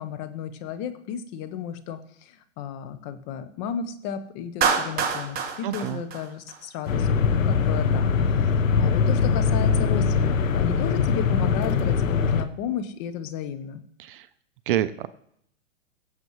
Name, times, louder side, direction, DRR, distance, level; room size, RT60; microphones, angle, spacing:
voice 1, 0.0-13.8, left 8 dB, 35° left, 9 dB, 1.1 m, -33 dB
Clapping, 4.6-6.9, right 6 dB, 25° right, 1.3 m, -26 dB
voice 2, 5.6-6.0 14.1-14.2 14.7-15.1, right 12 dB, 45° right, 13 dB, 0.6 m, -26 dB
sound 1, 6.9-12.4, left 5 dB, 80° left, 1.1 m, -22 dB
22.0 x 7.5 x 3.1 m, 0.71 s
hypercardioid pair, 135°, 39 cm